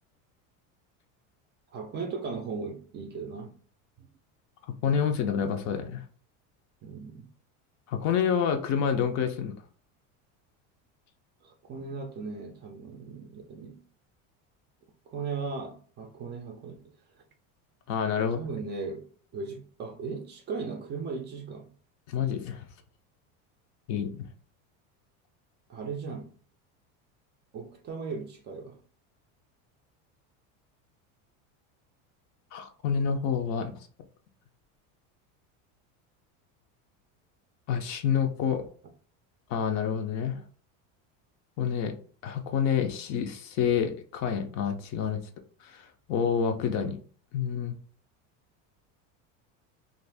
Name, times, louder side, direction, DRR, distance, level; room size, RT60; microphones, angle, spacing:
voice 1, 1.7-3.6 4.0-4.1 6.8-7.3 11.4-13.8 15.1-16.9 17.2-17.3 18.2-19.1 19.3-21.7 25.7-26.3 27.5-28.8, right 4 dB, 30° right, 0.4 m, -37 dB
voice 2, 4.8-6.0 7.9-9.5 17.9-18.4 22.1-22.7 23.9-24.2 32.5-33.8 37.7-38.6 39.5-40.4 41.6-42.0 42.2-45.2 45.6-45.8 46.1-47.0 47.3-47.8, left 7 dB, 45° left, 0.5 m, -28 dB
2.6 x 2.4 x 3.3 m
cardioid pair, 145°, 39 cm